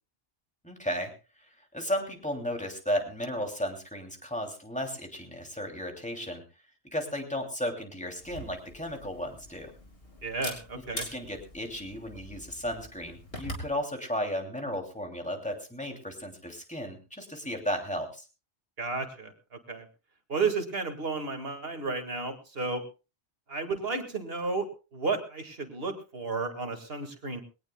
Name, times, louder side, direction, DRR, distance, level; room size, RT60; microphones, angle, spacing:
voice 1, 0.6-6.4 6.9-9.7 10.9-18.3, equal, 5° left, 3 dB, 2.8 m, -34 dB
Camera, 8.2-13.7, left 1 dB, 60° left, 3.7 m, -43 dB
voice 2, 10.2-11.1 18.8-19.3 19.7-19.9 20.3-22.8 23.5-27.4, right 4 dB, 65° right, 6 dB, 2.2 m, -32 dB
22.0 x 18.0 x 2.3 m, 0.31 s
omnidirectional pair, 1.1 m